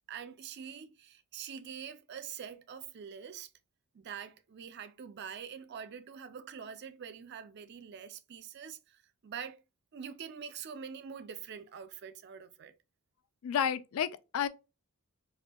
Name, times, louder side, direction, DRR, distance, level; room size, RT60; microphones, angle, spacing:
voice 1, 0.1-3.5 3.9-9.6 9.9-12.7, right 7 dB, 50° right, 0.4 m, -45 dB
voice 2, 13.4-14.5, left 8 dB, 70° left, 0.3 m, -31 dB
4.2 x 2.5 x 2.2 m
head